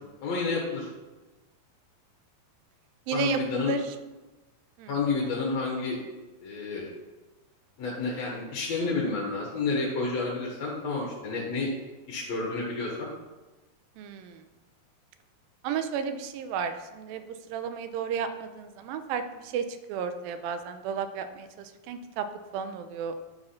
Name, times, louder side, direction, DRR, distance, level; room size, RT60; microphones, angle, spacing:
voice 1, 0.2-0.9 3.1-3.7 4.9-6.0 6.4-6.9 7.8-11.7 12.1-13.1, left 3 dB, 55° left, -3 dB, 2.3 m, -30 dB
voice 2, 3.1-4.0 4.8-4.9 14.0-14.4 15.6-17.2 17.5-22.3 22.5-23.2, right 7 dB, 85° right, 9 dB, 2.4 m, -33 dB
11.5 x 4.9 x 5.7 m, 1.1 s
omnidirectional pair, 4.2 m